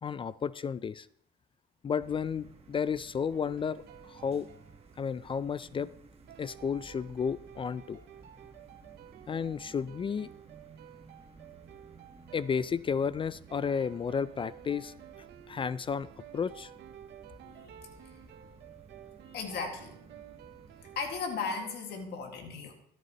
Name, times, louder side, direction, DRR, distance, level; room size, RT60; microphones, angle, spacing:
voice 1, 0.0-1.1 1.8-3.8 4.1-4.5 5.0-5.9 6.4-8.0 9.3-10.3 12.3-14.9 15.5-16.1 16.3-16.7, left 6 dB, 30° left, 18 dB, 0.3 m, -32 dB
sound 1, 2.0-21.2, right 5 dB, 35° right, 1.4 m, -55 dB
sound 2, 3.3-5.5 6.3-22.0, right 10 dB, 75° right, 0.9 m, -53 dB
voice 2, 17.4-18.2 19.2-19.9 21.0-22.7, left 5 dB, 75° left, 3 dB, 1.9 m, -37 dB
14.0 x 12.0 x 3.0 m, 0.65 s
cardioid pair, 105°, 18 cm